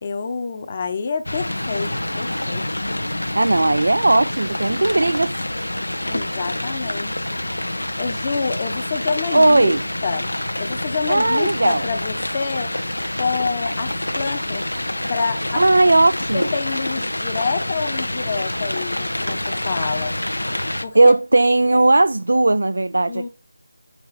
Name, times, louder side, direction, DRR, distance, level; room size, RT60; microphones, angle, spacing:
voice 1, 0.0-2.7 6.0-7.3 8.0-9.7 10.0-10.3 10.6-12.8 13.2-14.7 15.1-15.6 16.3-20.1 20.8-21.1 23.1-23.3, left 5 dB, 30° left, 1.0 m, -27 dB
sound 1, 1.3-20.9, left 1 dB, 85° left, 1.1 m, -27 dB
voice 2, 3.4-5.4 9.3-9.8 11.1-11.8 15.5-16.5 20.9-23.3, right 2 dB, 70° right, 0.4 m, -17 dB
8.6 x 6.1 x 4.2 m
figure-of-eight pair, 165°, 0 cm